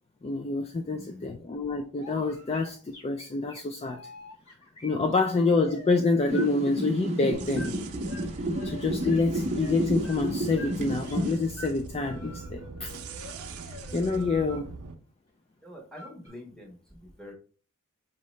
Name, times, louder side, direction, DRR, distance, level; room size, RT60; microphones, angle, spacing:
voice 1, 0.2-4.0 4.8-7.8 8.6-12.9 13.9-14.7, left 3 dB, 25° left, 0.3 m, -27 dB
voice 2, 0.9-1.5 15.6-17.3, left 1 dB, 5° left, 1.2 m, -46 dB
sound 1, 2.0-6.5 7.5-7.7 8.0-9.3 9.5-11.3 11.6-11.7 12.0-14.6 15.9-16.3, left 1 dB, 70° left, 2.0 m, -46 dB
sound 2, 6.3-11.3, right 1 dB, 30° right, 0.7 m, -31 dB
sound 3, 7.3-14.9, right 3 dB, 80° right, 0.6 m, -41 dB
5.0 x 2.8 x 3.1 m
head